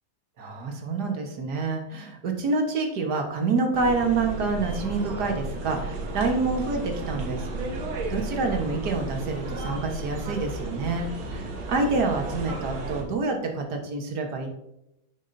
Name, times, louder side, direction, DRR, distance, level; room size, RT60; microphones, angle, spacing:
voice 1, 0.4-7.5 8.1-14.5, right 3 dB, 55° right, 3 dB, 1.7 m, -27 dB
sound 1, 3.7-13.0, right 2 dB, 80° right, 2.2 m, -33 dB
9.8 x 7.2 x 2.7 m, 0.86 s
omnidirectional pair, 2.2 m